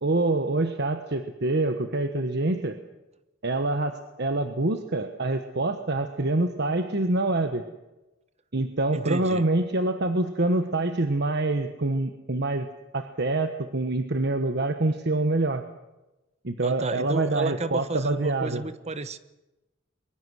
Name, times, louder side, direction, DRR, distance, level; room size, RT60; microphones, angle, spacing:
voice 1, 0.0-2.8 3.4-3.9 4.2-7.6 8.5-12.7 12.9-15.6 16.4-18.7, right 2 dB, 55° right, 7 dB, 1.2 m, -26 dB
voice 2, 8.9-9.4 16.6-19.2, right 3 dB, 35° right, 13 dB, 1.1 m, -31 dB
23.0 x 23.0 x 6.3 m, 1.0 s
head